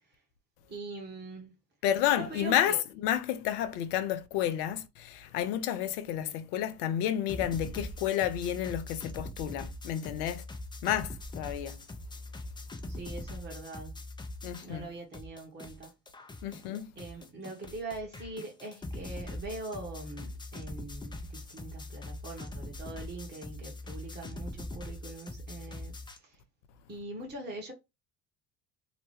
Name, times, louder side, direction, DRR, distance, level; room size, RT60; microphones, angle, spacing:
voice 1, 0.7-1.5 2.2-2.8 6.2-6.4 12.9-14.0 14.6-15.9 17.0-26.4 26.9-27.7, right 2 dB, 20° right, 1.0 m, -43 dB
voice 2, 1.8-10.4 10.8-11.8 14.4-14.9 16.4-16.9, left 11 dB, 70° left, 0.6 m, -31 dB
sound 1, 7.3-14.9 15.1-26.2, left 2 dB, 10° left, 0.4 m, -42 dB
2.9 x 2.1 x 3.1 m
hypercardioid pair, 65°, 47 cm